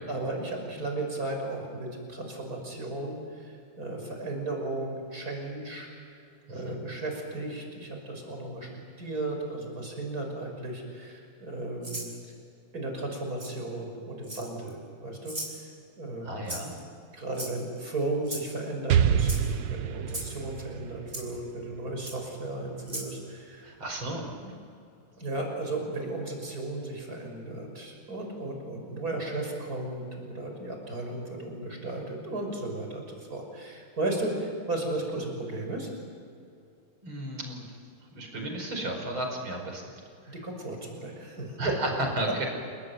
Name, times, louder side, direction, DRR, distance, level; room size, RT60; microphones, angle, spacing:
voice 1, 0.1-5.9 6.5-12.3 12.7-15.7 16.0-16.3 17.1-23.7 24.4-24.5 25.2-33.0 33.3-35.9 40.3-41.8, right 2 dB, 45° right, 2 dB, 6.4 m, -35 dB
voice 2, 6.5-6.8 16.2-16.7 23.6-24.2 37.0-37.8 38.1-39.8 40.2-40.4 41.6-42.5, right 1 dB, 85° right, 3 dB, 5.8 m, -33 dB
Rattle (instrument), 11.8-12.1 13.4-13.5 14.2-14.7 15.2-15.6 16.5-16.8 17.3-17.8 18.2-18.5 19.2-19.4 20.1-20.3 21.1-21.2 22.0-22.2 22.8-23.1, right 1 dB, 25° right, 6.5 m, -37 dB
Explosion, 18.9-22.7, right 8 dB, 65° right, 1.6 m, -27 dB
30.0 x 20.5 x 9.4 m, 2.6 s
omnidirectional pair, 2.2 m